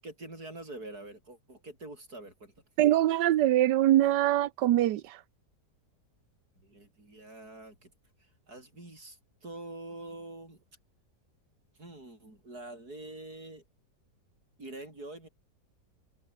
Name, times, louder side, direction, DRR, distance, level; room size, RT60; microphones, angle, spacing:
voice 1, 0.0-2.5 6.6-7.9 8.5-10.6 11.8-13.6 14.6-15.3, right 2 dB, 60° right, 8.4 m, -45 dB
voice 2, 2.8-5.2, right 13 dB, 80° right, 1.4 m, -23 dB
omnidirectional pair, 1.8 m